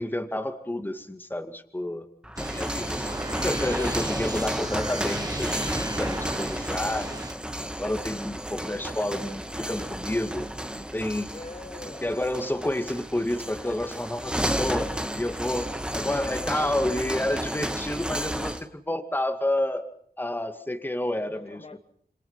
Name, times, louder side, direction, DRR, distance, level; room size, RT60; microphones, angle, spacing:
voice 1, 0.0-2.1 2.4-3.1 3.4-7.1 7.6-10.4 10.8-11.3 12.0-15.7 15.9-19.9 20.2-21.6, left 1 dB, 10° left, 2.2 m, -30 dB
sound 1, 2.2-18.7, equal, 5° right, 1.7 m, -32 dB
sound 2, 2.4-7.3, right 2 dB, 20° right, 1.0 m, -36 dB
voice 2, 2.7-3.2 4.9-5.0 11.3-12.2 15.9-16.5 21.1-21.8, left 3 dB, 35° left, 1.7 m, -45 dB
27.5 x 26.5 x 5.8 m
wide cardioid pair, 80°, 16 cm